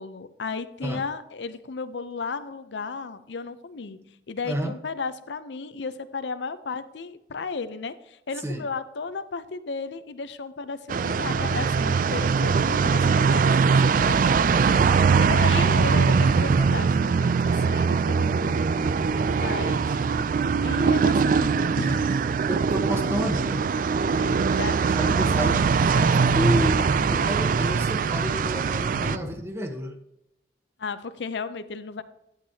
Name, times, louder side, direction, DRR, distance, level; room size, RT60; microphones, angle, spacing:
voice 1, 0.0-4.0 4.3-13.5 13.8-14.8 15.2-20.0 20.6-22.1 24.1-25.5 25.9-26.2 28.9-29.4 30.8-32.0, left 4 dB, 85° left, 0.6 m, -35 dB
voice 2, 4.4-4.8 8.4-8.6 22.5-23.7 24.9-25.7 26.3-29.9, equal, 15° right, 1.0 m, -30 dB
sound 1, 10.9-29.2, right 5 dB, 50° right, 0.3 m, -22 dB
11.5 x 8.1 x 2.8 m
head